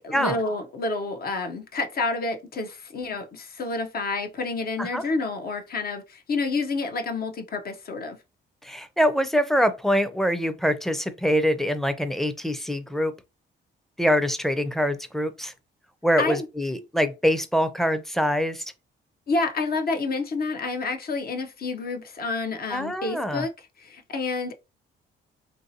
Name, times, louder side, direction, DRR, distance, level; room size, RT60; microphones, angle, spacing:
voice 1, 0.0-8.2 16.2-16.5 19.3-23.5 23.8-24.5, left 3 dB, 50° left, 0.6 m, -29 dB
voice 2, 8.6-13.1 14.0-15.5 16.0-18.7 22.7-23.4, equal, ahead, 0.5 m, -24 dB
3.1 x 2.7 x 2.7 m
cardioid pair, 90°, 20 cm